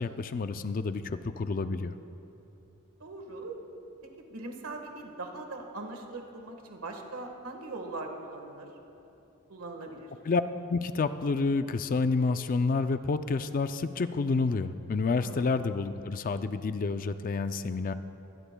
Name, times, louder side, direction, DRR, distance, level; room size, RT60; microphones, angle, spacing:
voice 1, 0.0-1.9 10.2-10.4 10.7-17.9, left 4 dB, 40° left, 11 dB, 0.4 m, -29 dB
voice 2, 3.0-3.6 4.0-8.7 9.5-10.1 15.2-15.5, right 2 dB, 75° right, 3 dB, 1.5 m, -41 dB
23.5 x 17.0 x 2.3 m, 2.9 s
head